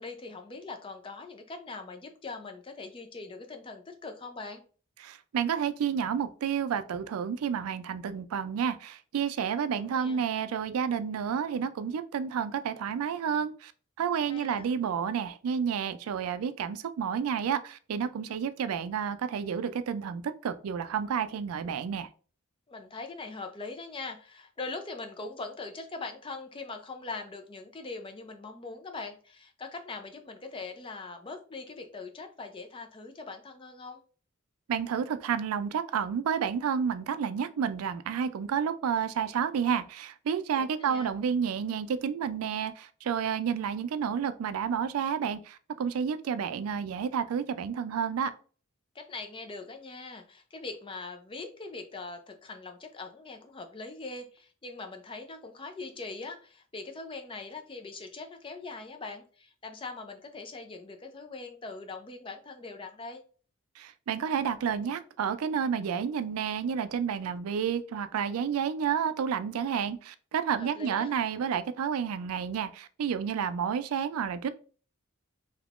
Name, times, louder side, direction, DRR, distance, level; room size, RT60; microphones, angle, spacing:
voice 1, 0.0-4.6 9.7-10.2 14.2-14.6 22.7-34.0 40.6-41.1 48.9-63.2 70.6-71.1, left 3 dB, 25° left, 0.4 m, -42 dB
voice 2, 5.0-13.7 14.0-22.1 34.7-48.3 63.8-74.5, right 7 dB, 90° right, 0.3 m, -30 dB
3.5 x 2.8 x 2.4 m
head